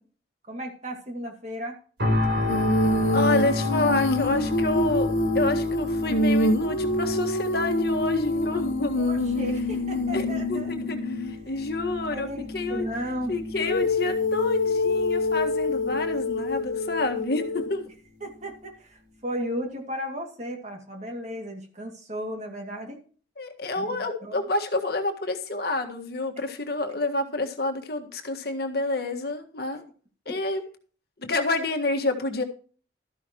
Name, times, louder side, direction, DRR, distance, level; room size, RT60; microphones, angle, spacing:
voice 1, 0.5-1.8 9.0-10.7 11.5-11.6 12.1-13.3 18.2-23.0 23.8-24.4 30.3-30.4, equal, 35° right, 3 dB, 2.3 m, -35 dB
sound 1, 2.0-17.0 17.5-17.7, left 2 dB, 65° right, 3.9 m, -31 dB
Female singing, 2.5-11.4 13.6-17.8, left 2 dB, 85° left, 0.9 m, -26 dB
voice 2, 3.1-5.1 5.3-8.9 10.1-12.3 12.5-12.9 13.3-17.9 23.4-29.8 30.2-30.6 31.2-32.4, left 2 dB, 55° left, 4 dB, 1.6 m, -28 dB
13.0 x 11.0 x 3.0 m, 0.41 s
head